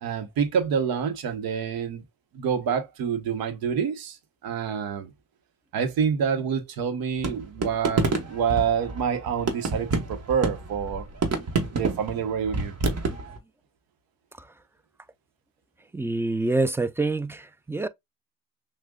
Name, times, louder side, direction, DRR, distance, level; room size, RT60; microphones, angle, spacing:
voice 1, 0.0-2.0 2.3-4.2 4.4-5.1 5.7-11.0 11.7-12.7, right 7 dB, 90° right, 0.8 m, -27 dB
sound 1, 7.2-13.4, right 3 dB, 45° right, 1.1 m, -28 dB
voice 2, 15.9-17.9, right 2 dB, 5° right, 0.3 m, -26 dB
6.0 x 2.2 x 2.3 m
cardioid pair, 70°, 34 cm